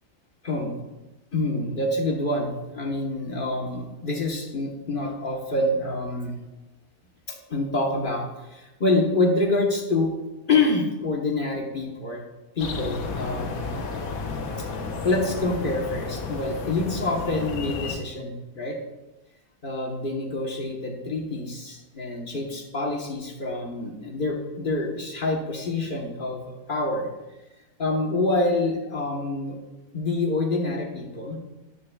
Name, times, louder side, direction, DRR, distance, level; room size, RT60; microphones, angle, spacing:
voice 1, 1.3-6.3 7.3-10.1 10.5-12.2 12.6-13.7 14.6-14.7 15.0-18.8 19.6-27.1 27.8-29.6 29.9-31.4, left 2 dB, 40° left, 0 dB, 1.4 m, -26 dB
sound 1, 12.6-18.0, left 4 dB, 90° left, 1.4 m, -32 dB
12.5 x 9.4 x 2.4 m, 1.1 s
omnidirectional pair, 1.4 m